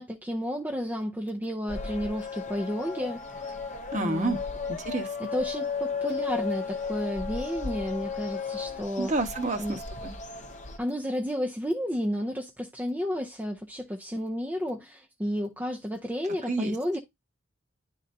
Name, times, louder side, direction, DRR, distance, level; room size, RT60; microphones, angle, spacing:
voice 1, 0.0-3.2 3.9-4.4 5.2-9.1 9.6-9.8 10.8-17.0, equal, 10° right, 0.5 m, -32 dB
sound 1, 1.7-10.8, left 5 dB, 35° left, 0.7 m, -35 dB
voice 2, 3.9-4.4 4.7-5.1 9.0-10.1 16.5-16.7, right 2 dB, 35° right, 1.0 m, -29 dB
10.5 x 3.8 x 2.7 m
head